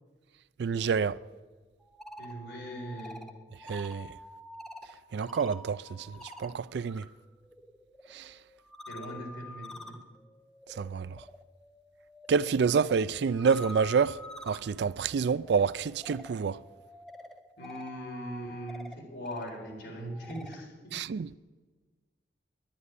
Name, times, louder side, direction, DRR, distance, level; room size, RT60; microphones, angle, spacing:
voice 1, 0.6-1.2 3.6-4.1 5.1-7.1 8.1-8.3 10.8-11.2 12.3-14.2 14.4-16.6 20.9-21.3, right 6 dB, 65° right, 0.3 m, -28 dB
sound 1, 1.8-7.1 7.4-20.6, left 1 dB, ahead, 0.8 m, -48 dB
voice 2, 2.2-3.2 8.9-9.9 17.6-21.0, equal, 80° left, 4.1 m, -40 dB
10.5 x 10.5 x 9.7 m
head